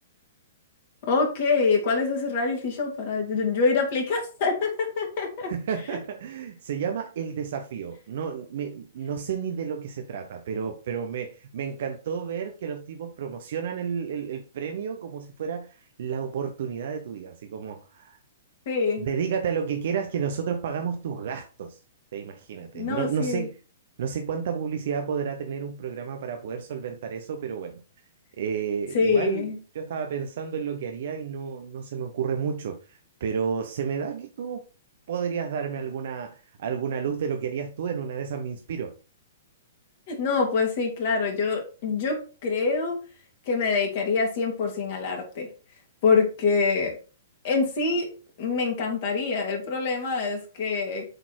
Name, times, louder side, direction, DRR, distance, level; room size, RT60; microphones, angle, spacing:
voice 1, 1.0-5.5 18.7-19.1 22.7-23.5 28.9-29.6 40.1-43.0 43.5-45.5 46.0-47.0 47.4-48.1 48.4-51.1, left 4 dB, 50° left, 2.8 m, -25 dB
voice 2, 5.5-18.2 19.0-21.8 22.1-23.6 24.0-27.8 28.4-29.5 29.7-34.6 35.1-38.9, right 7 dB, 55° right, 0.9 m, -31 dB
7.9 x 4.1 x 4.5 m
figure-of-eight pair, 115°, 0 cm